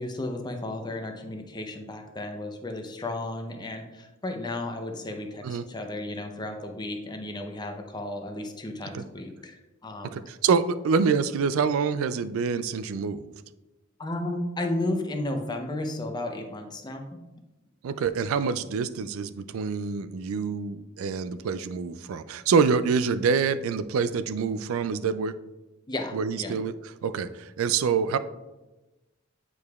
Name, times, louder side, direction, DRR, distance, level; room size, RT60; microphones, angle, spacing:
voice 1, 0.0-10.2 14.0-17.2 25.9-26.6, left 1 dB, 20° left, 4 dB, 0.6 m, -33 dB
voice 2, 10.0-13.3 17.8-25.4 26.1-26.7 27.0-28.2, right 5 dB, 85° right, 14 dB, 0.3 m, -26 dB
8.5 x 4.7 x 2.3 m, 1.1 s
head